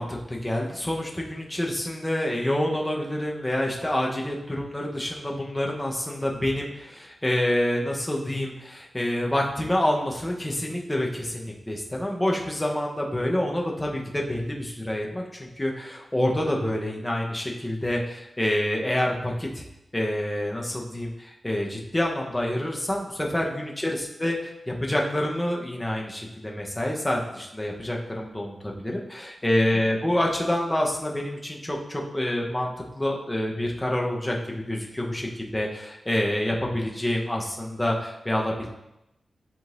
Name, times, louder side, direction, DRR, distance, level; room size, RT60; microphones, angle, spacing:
voice 1, 0.0-19.6 19.9-38.7, left 1 dB, 10° left, -1 dB, 0.9 m, -27 dB
10.5 x 3.8 x 2.5 m, 0.89 s
wide cardioid pair, 150°, 0 cm